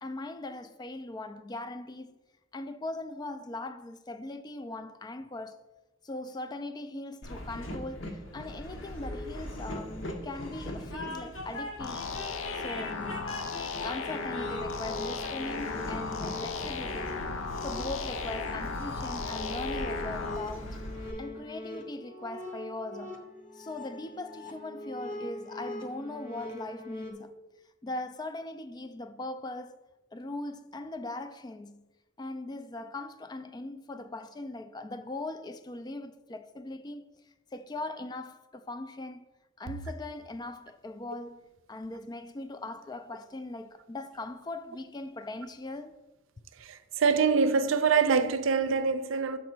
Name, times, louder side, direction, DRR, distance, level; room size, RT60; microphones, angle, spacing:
voice 1, 0.0-2.2 2.5-5.6 6.0-12.1 12.5-13.3 13.8-17.2 17.6-20.8 21.2-23.2 23.5-27.3 27.8-29.8 30.1-31.8 32.2-37.0 37.5-39.3 39.6-46.0, left 2 dB, 20° left, 0.3 m, -40 dB
Train, 7.2-21.1, left 1 dB, 75° left, 1.0 m, -40 dB
sound 1, 11.8-20.4, left 4 dB, 90° left, 0.5 m, -36 dB
sound 2, 12.8-27.1, left 1 dB, 40° left, 0.9 m, -42 dB
voice 2, 46.6-49.4, right 5 dB, 75° right, 0.5 m, -25 dB
6.1 x 4.0 x 6.0 m
head